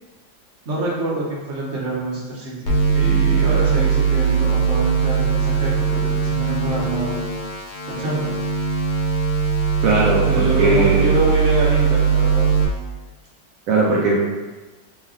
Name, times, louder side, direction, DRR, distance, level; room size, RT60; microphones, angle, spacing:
voice 1, 0.6-7.2 7.9-8.4 10.3-12.5, right 2 dB, 50° right, -5 dB, 1.0 m, -26 dB
sound 1, 2.7-12.7, right 6 dB, 70° left, 1.2 m, -20 dB
voice 2, 9.8-11.1 13.7-14.2, right 2 dB, 75° right, -4 dB, 0.7 m, -19 dB
3.2 x 2.3 x 3.7 m, 1.2 s
omnidirectional pair, 2.0 m